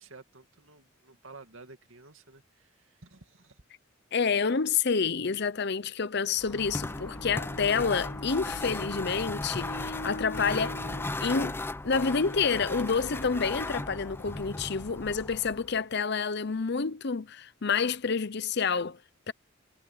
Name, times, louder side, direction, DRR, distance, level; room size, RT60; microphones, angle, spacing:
voice 1, 0.0-3.6, right 3 dB, 75° right, 2.4 m, -52 dB
voice 2, 4.1-10.8 11.2-19.0 19.3-19.4, left 5 dB, 55° left, 0.7 m, -28 dB
sound 1, 6.4-15.8, left 2 dB, 10° left, 0.4 m, -36 dB
Bowed string instrument, 6.6-11.3, left 1 dB, 80° left, 4.2 m, -43 dB
head